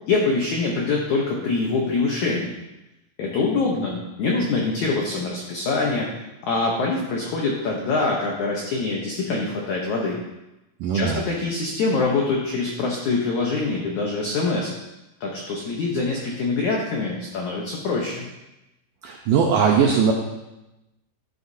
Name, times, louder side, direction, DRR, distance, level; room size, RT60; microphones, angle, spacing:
voice 1, 0.1-2.5 3.2-6.1 6.4-10.2 10.9-14.7 15.2-18.2, left 3 dB, 80° left, -1 dB, 1.7 m, -24 dB
voice 2, 10.8-11.2 19.0-20.1, right 6 dB, 85° right, 1 dB, 1.9 m, -19 dB
10.5 x 8.0 x 2.7 m, 0.97 s
omnidirectional pair, 4.7 m